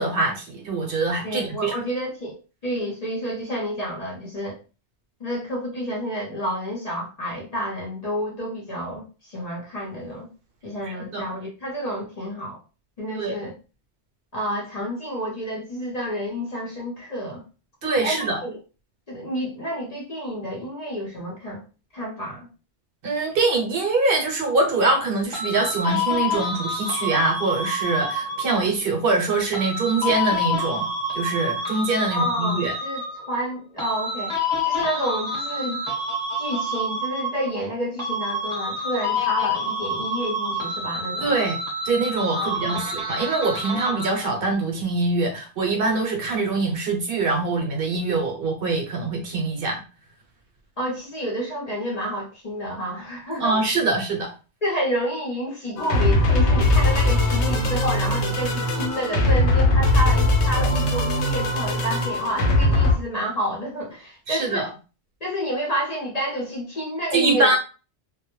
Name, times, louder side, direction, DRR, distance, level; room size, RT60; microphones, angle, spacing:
voice 1, 0.0-1.7 11.1-11.2 13.2-13.4 17.8-18.4 23.0-30.9 31.1-32.7 41.2-41.6 41.8-49.8 53.4-54.3 64.3-64.7 67.1-67.6, right 3 dB, 60° right, 1 dB, 0.8 m, -23 dB
voice 2, 1.2-4.6 5.2-10.3 10.6-12.6 13.0-13.5 14.3-17.4 18.0-18.5 19.1-21.6 21.9-22.5 32.1-33.0 33.3-34.4 34.6-35.8 36.4-41.3 42.3-42.8 50.8-53.6 54.6-64.7 65.2-67.5, equal, 40° left, -3 dB, 0.7 m, -29 dB
sound 1, 25.3-28.7 29.5-33.3 33.8-37.7 38.0-44.3, left 1 dB, 5° left, 0.9 m, -28 dB
sound 2, 55.8-63.0, left 1 dB, 85° left, 1.0 m, -20 dB
2.2 x 2.1 x 2.9 m, 0.33 s
omnidirectional pair, 1.1 m